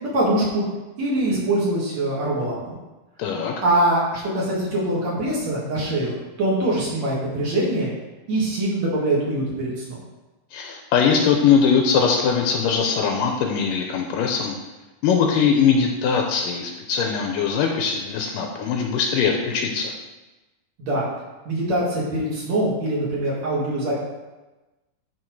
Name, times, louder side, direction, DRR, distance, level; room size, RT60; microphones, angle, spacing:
voice 1, 0.0-0.6 1.0-2.6 3.6-7.9 8.3-10.0 20.8-21.1 21.4-24.0, right 1 dB, 50° right, -6 dB, 3.0 m, -23 dB
voice 2, 3.2-3.5 10.5-14.6 15.0-19.9, left 6 dB, 80° left, 2 dB, 2.2 m, -21 dB
11.0 x 4.4 x 4.7 m, 1.1 s
omnidirectional pair, 4.2 m